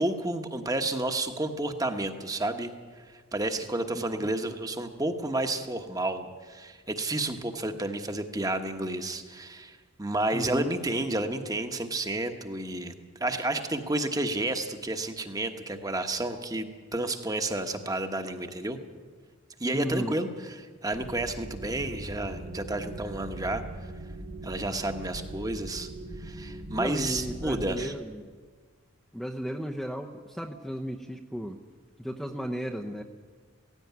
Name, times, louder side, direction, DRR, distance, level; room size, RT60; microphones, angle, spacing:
voice 1, 0.0-2.7 3.3-12.9 13.2-18.8 19.6-23.6 24.4-25.9 26.2-27.9, right 2 dB, 15° right, 7 dB, 1.2 m, -31 dB
voice 2, 3.9-4.3 10.3-10.7 19.7-20.1 26.7-28.3 29.1-31.6 32.0-33.0, equal, ahead, 0 dB, 0.8 m, -34 dB
sound 1, 20.9-27.9, right 1 dB, 45° right, 2.0 m, -40 dB
17.0 x 16.5 x 9.5 m, 1.5 s
head